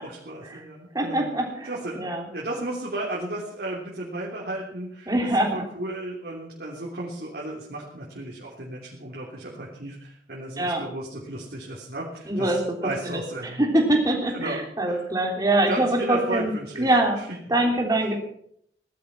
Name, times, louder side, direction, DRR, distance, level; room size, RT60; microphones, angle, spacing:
voice 1, 0.0-1.3 1.6-13.6 14.3-14.6 14.9-15.0 15.6-16.9 17.2-17.3, right 1 dB, 60° right, -4 dB, 3.4 m, -34 dB
voice 2, 0.9-1.7 1.9-2.2 5.1-5.5 10.6-10.8 12.3-12.6 13.1-13.2 13.6-17.2 17.5-18.2, right 1 dB, 20° right, 1 dB, 3.4 m, -23 dB
17.5 x 12.5 x 6.0 m, 0.70 s
head